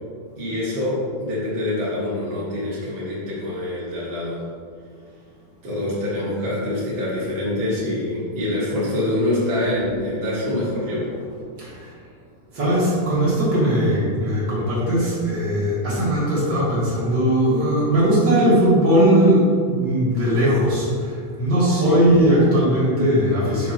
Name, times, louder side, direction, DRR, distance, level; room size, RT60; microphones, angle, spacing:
voice 1, 0.4-4.4 5.6-11.2 21.7-22.0, left 1 dB, 70° right, -8 dB, 0.5 m, -25 dB
voice 2, 11.0-12.0 12.5-23.7, equal, 40° right, -8 dB, 1.7 m, -19 dB
7.2 x 6.0 x 2.9 m, 2.1 s
omnidirectional pair, 4.1 m